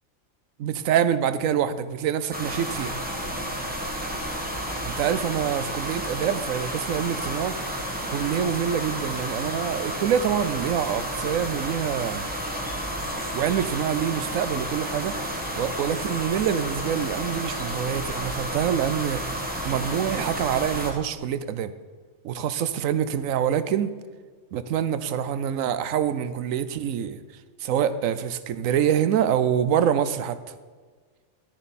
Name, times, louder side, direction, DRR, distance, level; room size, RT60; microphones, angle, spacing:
voice 1, 0.6-3.0 4.8-7.6 8.1-12.2 13.3-15.2 15.5-21.7 22.2-23.9 24.5-27.2 27.6-30.4, right 9 dB, 90° right, 1.0 m, -26 dB
sound 1, 2.3-20.9, equal, 10° right, 1.1 m, -31 dB
11.0 x 10.0 x 4.2 m
omnidirectional pair, 1.3 m